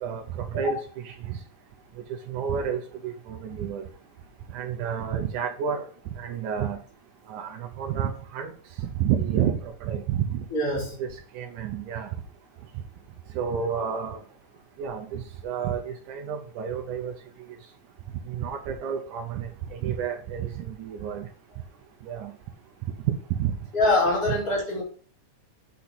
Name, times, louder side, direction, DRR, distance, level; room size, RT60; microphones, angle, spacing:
voice 1, 0.0-1.4 2.3-3.9 4.5-5.8 6.2-6.8 7.3-8.5 9.0-10.5 11.0-11.1 11.4-12.1 13.4-14.2 14.8-17.1 18.3-21.3 22.1-22.3 23.1-23.5, right 8 dB, 80° right, 3 dB, 2.3 m, -30 dB
voice 2, 10.5-11.0 23.7-24.8, left 2 dB, 50° left, -6 dB, 4.7 m, -24 dB
8.6 x 5.8 x 4.0 m, 0.42 s
omnidirectional pair, 3.6 m